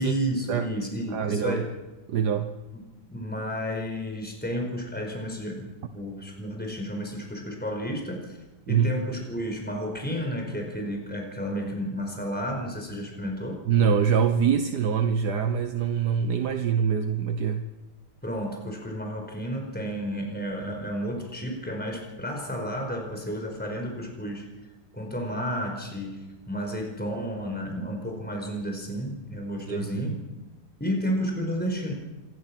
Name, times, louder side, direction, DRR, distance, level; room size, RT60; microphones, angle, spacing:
voice 1, 0.0-1.7 2.7-2.8 3.1-8.4 8.7-13.6 18.2-24.5 24.9-30.2 30.8-31.9, equal, 5° left, 2 dB, 4.7 m, -32 dB
voice 2, 1.1-1.6 2.1-2.5 8.7-8.9 13.7-17.7 29.7-30.0, right 7 dB, 70° right, 7 dB, 1.6 m, -24 dB
27.5 x 21.5 x 6.0 m, 1.1 s
omnidirectional pair, 1.8 m